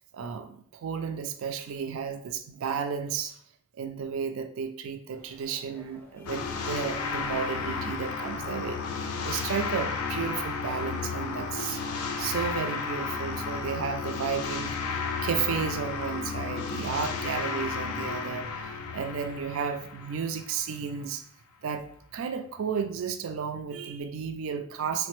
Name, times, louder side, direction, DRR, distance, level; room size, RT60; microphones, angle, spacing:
voice 1, 0.1-3.4 3.7-11.8 12.2-14.7 15.2-21.2 21.6-25.1, right 6 dB, 70° right, 8 dB, 0.3 m, -33 dB
sound 1, 5.1-11.4, left 1 dB, 10° left, 0.4 m, -53 dB
sound 2, 6.3-20.6, left 5 dB, 85° left, 0.4 m, -33 dB
3.1 x 2.0 x 3.0 m, 0.66 s
head